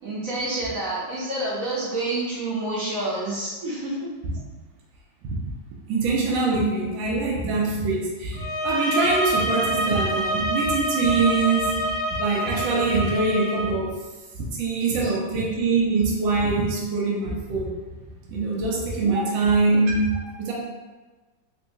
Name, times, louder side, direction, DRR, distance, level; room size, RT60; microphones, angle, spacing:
voice 1, 0.0-4.1 15.0-15.1 19.0-19.1, right 2 dB, 55° right, -6 dB, 1.1 m, -28 dB
voice 2, 5.9-11.8 12.2-13.9 14.4-17.7 18.3-20.5, right 3 dB, 85° right, -3 dB, 1.4 m, -23 dB
sound 1, 8.3-13.7, right 1 dB, 15° left, 1.1 m, -26 dB
3.7 x 2.9 x 2.6 m, 1.2 s
omnidirectional pair, 2.0 m